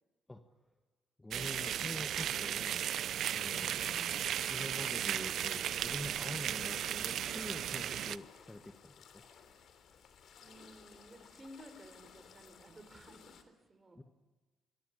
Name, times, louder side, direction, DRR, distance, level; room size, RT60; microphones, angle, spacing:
voice 1, 1.2-3.1 3.3-9.2 14.0-14.1, left 1 dB, 15° left, 6 dB, 1.6 m, -46 dB
sound 1, 1.3-8.2, right 10 dB, 70° right, 0.7 m, -35 dB
sound 2, 3.6-7.6, left 2 dB, 30° left, 4.0 m, -61 dB
sound 3, 6.6-13.4, left 7 dB, 65° left, 3.3 m, -58 dB
voice 2, 10.4-14.0, right 1 dB, 25° right, 8 dB, 5.4 m, -56 dB
24.5 x 20.5 x 8.6 m, 1.3 s
cardioid pair, 90°, 0 cm